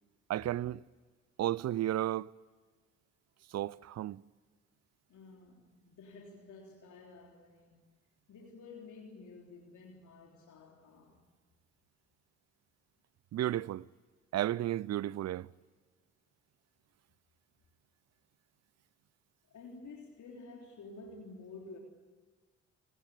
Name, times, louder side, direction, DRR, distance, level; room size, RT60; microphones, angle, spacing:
voice 1, 0.3-0.8 1.4-2.3 3.5-4.2 13.3-13.9 14.3-15.5, right 13 dB, 50° right, 0.7 m, -33 dB
voice 2, 5.1-7.8 8.3-11.2 19.5-21.8, left 3 dB, 60° left, 3.7 m, -51 dB
28.5 x 19.0 x 8.5 m
hypercardioid pair, 40°, 33 cm